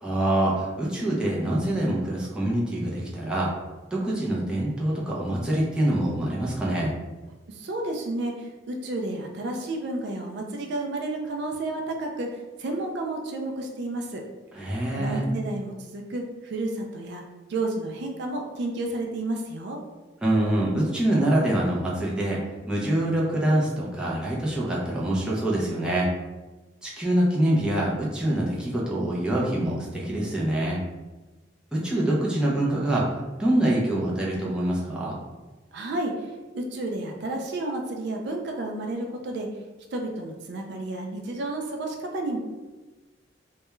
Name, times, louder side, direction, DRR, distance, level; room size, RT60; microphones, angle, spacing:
voice 1, 0.0-3.5 3.9-6.9 14.5-15.3 20.2-26.1 26.8-30.8 31.7-35.2, right 1 dB, 5° right, -6 dB, 0.5 m, -25 dB
voice 2, 7.5-14.2 15.0-17.2 17.5-19.8 35.7-39.5 39.9-42.4, right 2 dB, 65° right, 2 dB, 0.4 m, -31 dB
2.2 x 2.2 x 3.0 m, 1.2 s
head